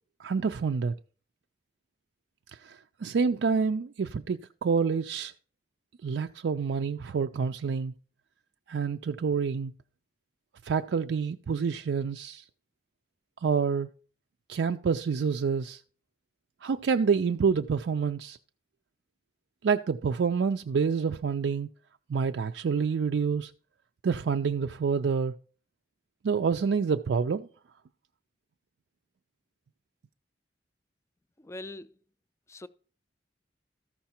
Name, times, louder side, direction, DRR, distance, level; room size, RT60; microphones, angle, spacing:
voice 1, 0.2-0.9 2.6-5.3 6.0-7.9 8.7-9.7 10.6-12.4 13.4-13.9 14.5-15.8 16.6-18.4 19.6-21.7 22.1-23.5 24.0-25.4 26.2-27.5, right 5 dB, 75° right, 0.4 m, -27 dB
voice 2, 31.4-31.9 32.5-32.7, left 2 dB, 15° left, 0.4 m, -42 dB
13.5 x 5.7 x 4.3 m
head